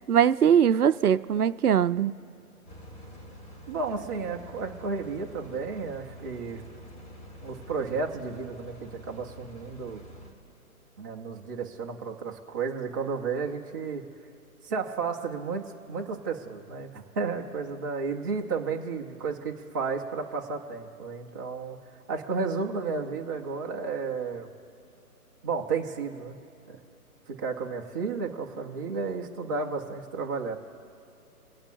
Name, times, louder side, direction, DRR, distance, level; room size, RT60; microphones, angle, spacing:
voice 1, 0.0-2.1, right 8 dB, 75° right, 15 dB, 0.6 m, -21 dB
sound 1, 2.7-10.3, equal, 25° left, 2.8 m, -47 dB
voice 2, 3.7-6.6 7.4-10.0 11.0-14.0 14.6-21.8 22.1-24.5 25.4-26.3 26.7-26.8 27.3-30.6, right 4 dB, 15° right, 0 dB, 0.6 m, -32 dB
26.0 x 8.8 x 2.6 m, 2.5 s
figure-of-eight pair, 135°, 45 cm